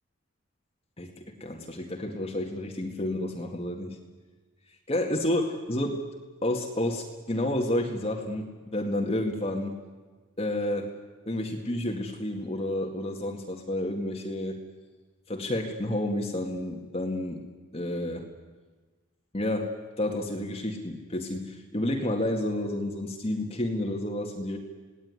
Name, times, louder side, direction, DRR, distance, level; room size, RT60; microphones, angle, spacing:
voice 1, 1.0-4.0 4.9-6.0 6.4-9.8 10.4-10.9 11.3-14.6 15.3-17.5 17.7-18.3 19.3-19.7 20.0-24.6, left 1 dB, 30° left, 2 dB, 2.0 m, -30 dB
28.0 x 18.0 x 9.7 m, 1.3 s
head